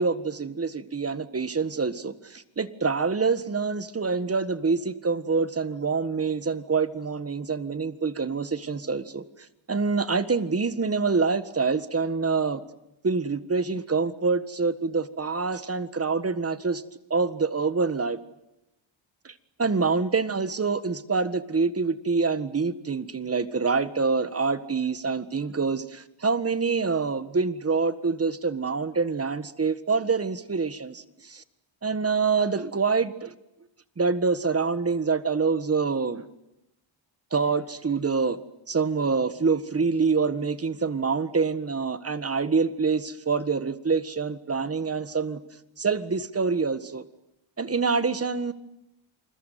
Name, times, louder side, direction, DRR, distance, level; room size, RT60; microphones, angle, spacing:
voice 1, 0.0-9.2 9.7-12.6 13.0-16.8 17.1-18.2 19.3-31.4 31.8-33.3 34.0-36.2 37.3-38.4 38.7-45.4 45.8-47.0 47.6-48.5, right 4 dB, 30° right, 13 dB, 1.6 m, -26 dB
28.0 x 21.5 x 9.4 m, 0.90 s
cardioid pair, 105°, 48 cm